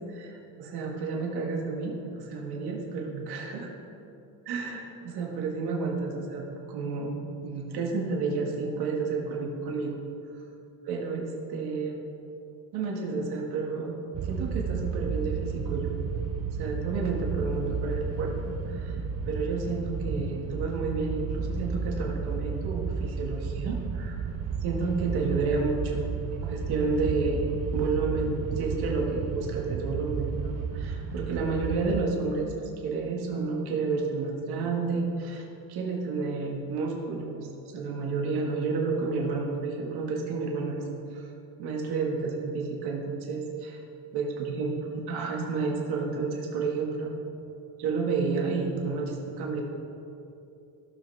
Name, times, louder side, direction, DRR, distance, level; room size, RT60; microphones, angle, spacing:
voice 1, 0.1-3.7 4.5-6.4 6.7-7.2 7.4-10.0 10.9-12.0 12.7-14.0 14.2-15.9 16.5-19.0 19.3-24.2 24.6-32.5 32.8-37.5 37.7-40.9 41.1-41.3 41.6-43.7 44.1-47.1 47.8-49.6, right 4 dB, 70° right, -1 dB, 2.0 m, -31 dB
sound 1, 14.1-32.0, right 5 dB, 40° right, 0.7 m, -32 dB
17.0 x 6.0 x 3.5 m, 2.8 s
cardioid pair, 110°, 40 cm